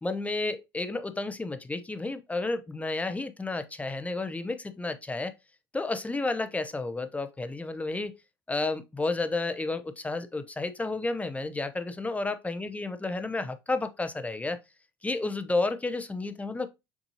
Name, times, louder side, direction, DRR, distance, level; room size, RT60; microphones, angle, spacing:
voice 1, 0.0-5.3 5.7-8.1 8.5-14.6 15.0-16.7, left 3 dB, 10° left, 0.6 m, -31 dB
7.0 x 2.7 x 2.8 m
figure-of-eight pair, 60°, 12 cm